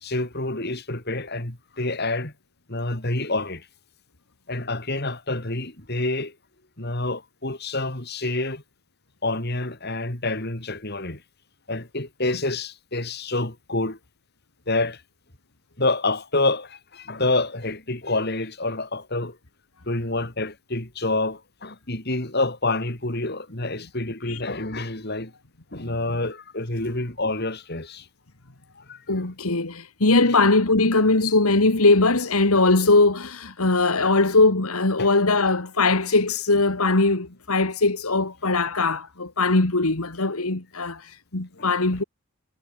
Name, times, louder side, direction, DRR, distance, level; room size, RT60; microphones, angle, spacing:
voice 1, 0.0-2.3 2.7-3.7 4.5-6.4 6.8-8.6 9.2-11.2 11.7-14.0 14.7-15.0 15.8-19.4 19.9-25.3 25.7-28.1 28.8-29.0 35.0-35.1 41.6-42.0, left 2 dB, 45° left, 3.4 m, -28 dB
voice 2, 29.1-42.0, left 3 dB, 75° left, 2.1 m, -20 dB
head